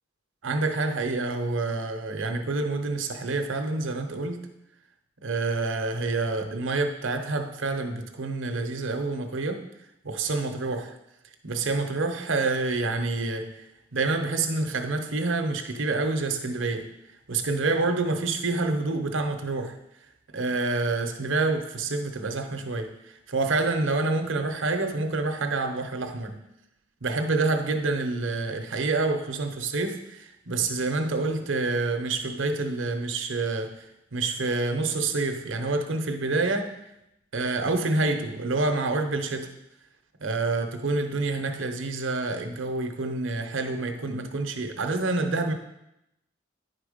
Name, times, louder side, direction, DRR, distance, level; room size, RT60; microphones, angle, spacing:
voice 1, 0.4-4.5 5.2-9.6 10.0-11.0 11.4-13.6 13.9-16.9 17.3-19.8 20.3-26.4 27.0-33.9 34.1-36.7 37.3-39.5 40.2-45.5, right 3 dB, 75° right, 0.8 m, -27 dB
9.9 x 4.4 x 5.1 m
head